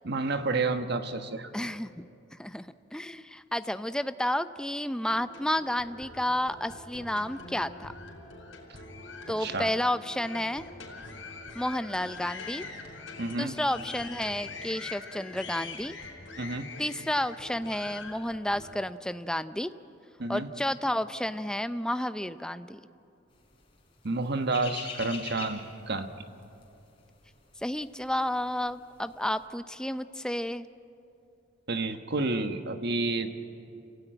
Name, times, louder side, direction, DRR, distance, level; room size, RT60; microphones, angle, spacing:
voice 1, 0.0-1.5 9.4-9.7 13.2-13.6 16.4-16.7 20.2-20.5 24.0-25.6 25.9-26.1 31.7-33.4, right 3 dB, 60° right, 8 dB, 1.3 m, -30 dB
voice 2, 1.5-2.0 2.4-7.9 9.3-10.7 11.5-12.7 13.4-16.0 16.8-19.7 20.3-22.8 27.6-30.7, left 1 dB, 5° left, 12 dB, 0.5 m, -31 dB
sound 1, 5.0-18.7, left 3 dB, 75° left, 4.7 m, -44 dB
sound 2, 23.6-28.6 28.9-29.2, left 5 dB, 30° left, 3.6 m, -41 dB
27.5 x 17.0 x 9.1 m, 2.7 s
head